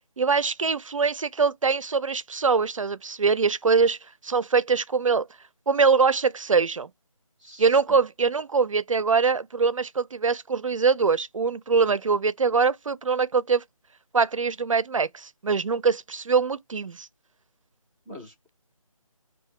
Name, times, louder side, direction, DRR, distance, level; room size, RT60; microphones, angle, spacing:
voice 1, 0.2-4.0 4.2-5.3 5.7-6.9 7.6-13.6 14.1-17.1, right 5 dB, 65° right, 0.5 m, -23 dB
voice 2, 7.4-8.0 18.1-18.5, left 1 dB, 5° left, 0.5 m, -45 dB
4.7 x 2.7 x 3.1 m
figure-of-eight pair, 155°, 18 cm